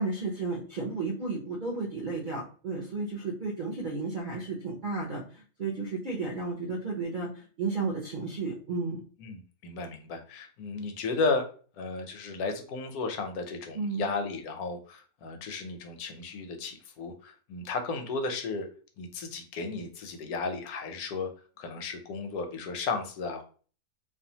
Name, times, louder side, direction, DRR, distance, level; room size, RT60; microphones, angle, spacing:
voice 1, 0.0-9.0 13.7-14.1, right 3 dB, 55° right, -3 dB, 0.5 m, -33 dB
voice 2, 9.2-11.5 11.8-18.7 19.0-21.3 21.6-23.4, left 4 dB, 85° left, 5 dB, 1.1 m, -34 dB
2.6 x 2.2 x 2.7 m, 0.40 s
omnidirectional pair, 1.5 m